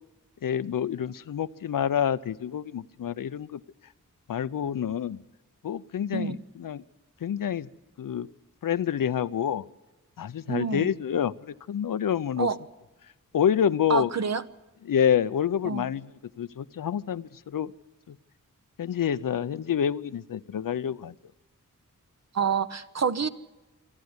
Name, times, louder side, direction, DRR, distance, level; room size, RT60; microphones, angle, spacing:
voice 1, 0.4-3.6 4.3-5.2 5.6-6.8 7.2-7.7 8.0-8.3 8.6-9.6 10.2-12.5 13.3-14.1 14.9-16.0 16.4-17.7 18.1-18.2 18.8-21.1, left 8 dB, 85° left, 15 dB, 0.6 m, -27 dB
voice 2, 10.5-10.9 12.4-12.6 13.9-14.4 15.6-15.8 22.3-23.3, right 5 dB, 55° right, 12 dB, 0.9 m, -27 dB
26.5 x 10.5 x 9.7 m, 1.1 s
wide cardioid pair, 95°, 32 cm